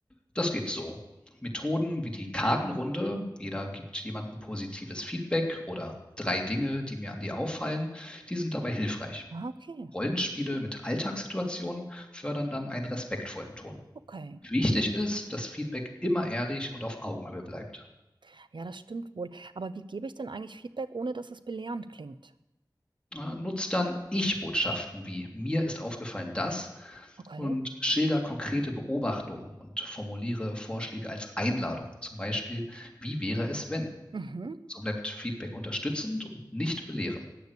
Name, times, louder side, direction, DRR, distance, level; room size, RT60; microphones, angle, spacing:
voice 1, 0.3-1.0 1.4-9.2 9.9-13.8 14.4-17.8 23.1-33.9 34.7-37.3, left 1 dB, 10° left, 1 dB, 3.0 m, -32 dB
voice 2, 9.3-9.9 14.1-14.4 18.2-22.3 27.2-27.6 34.1-34.6, right 3 dB, 80° right, 13 dB, 0.8 m, -38 dB
15.0 x 10.0 x 8.4 m, 0.98 s
wide cardioid pair, 45°, 8 cm